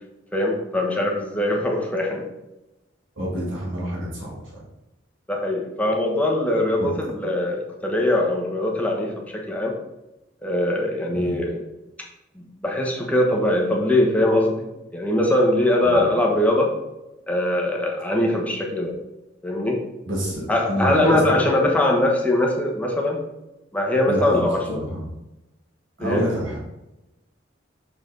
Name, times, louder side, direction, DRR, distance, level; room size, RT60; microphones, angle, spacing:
voice 1, 0.3-2.3 5.3-9.7 10.4-11.6 12.4-14.7 14.9-16.7 17.3-19.0 19.4-19.8 20.5-23.2 23.7-24.6 26.0-26.3, left 1 dB, 10° left, -1 dB, 1.2 m, -21 dB
voice 2, 3.2-4.4 6.8-6.9 11.1-11.4 15.8-16.0 20.1-21.4 24.1-25.1 26.0-26.6, equal, 75° right, -4 dB, 2.1 m, -27 dB
6.0 x 5.7 x 4.0 m, 0.95 s
head